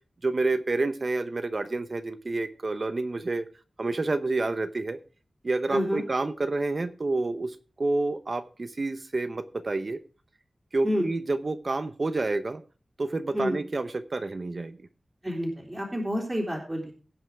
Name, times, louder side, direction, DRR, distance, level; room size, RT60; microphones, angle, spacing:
voice 1, 0.2-3.5 3.8-5.0 5.4-10.0 10.7-12.6 13.0-14.9 16.8-16.9, right 2 dB, 50° right, 11 dB, 0.8 m, -29 dB
voice 2, 5.7-6.0 10.8-11.1 13.3-13.6 15.2-16.9, equal, 20° right, -3 dB, 3.2 m, -28 dB
17.0 x 5.8 x 4.7 m, 0.36 s
wide cardioid pair, 85°, 0 cm